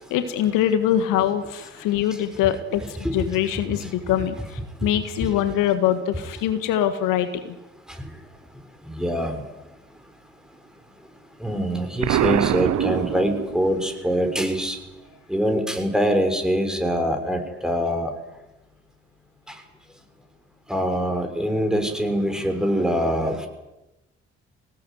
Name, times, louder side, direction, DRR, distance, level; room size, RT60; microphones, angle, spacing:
voice 1, 0.1-7.6, left 11 dB, 70° left, 10 dB, 1.8 m, -23 dB
voice 2, 9.0-9.4 11.4-14.8 15.3-18.1 20.7-23.5, equal, ahead, 5 dB, 6.9 m, -24 dB
Explosion, 12.0-13.8, right 12 dB, 55° right, 0.8 m, -23 dB
24.5 x 19.5 x 9.5 m, 0.98 s
hypercardioid pair, 40°, 33 cm